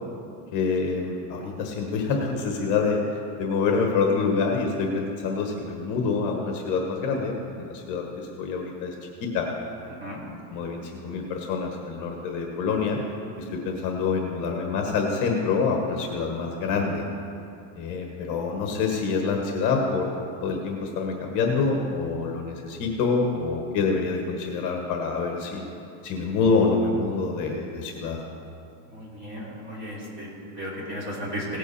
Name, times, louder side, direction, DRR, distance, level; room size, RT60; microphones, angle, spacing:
voice 1, 0.5-3.0 3.4-8.9 9.2-9.5 10.2-13.0 13.4-17.0 17.7-20.1 20.4-25.6 26.0-28.2, left 4 dB, 40° left, 1 dB, 1.4 m, -26 dB
voice 2, 28.9-31.6, equal, 25° right, -6 dB, 3.3 m, -35 dB
17.5 x 8.4 x 4.2 m, 2.6 s
supercardioid pair, 165°, 47 cm